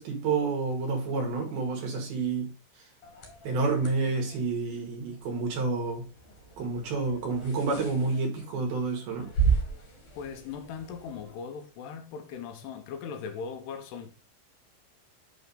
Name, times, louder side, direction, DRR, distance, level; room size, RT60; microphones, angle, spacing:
voice 1, 0.0-2.8 3.4-6.1 6.6-9.3, right 4 dB, 65° right, 2.8 m, -29 dB
sound 1, 3.0-11.3, right 5 dB, 55° left, 2.3 m, -35 dB
voice 2, 10.2-14.1, left 6 dB, 75° left, 2.7 m, -39 dB
8.0 x 3.4 x 5.2 m
omnidirectional pair, 5.4 m